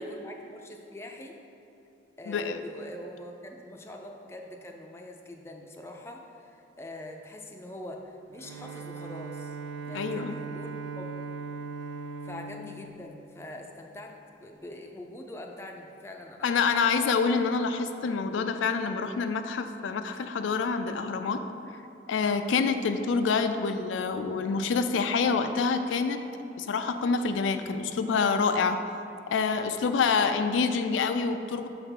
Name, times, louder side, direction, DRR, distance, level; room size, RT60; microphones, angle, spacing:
voice 1, 0.0-1.4 2.2-9.6 9.9-11.2 12.2-16.5 16.8-16.9, left 1 dB, 15° left, 1 dB, 0.4 m, -43 dB
voice 2, 2.3-2.6 9.9-10.4 16.4-21.5 22.1-26.2 26.6-28.8 29.3-31.7, left 5 dB, 90° left, 8 dB, 0.4 m, -27 dB
Bowed string instrument, 8.3-14.0, right 4 dB, 75° right, 0.3 m, -39 dB
6.2 x 3.4 x 5.8 m, 3.0 s
head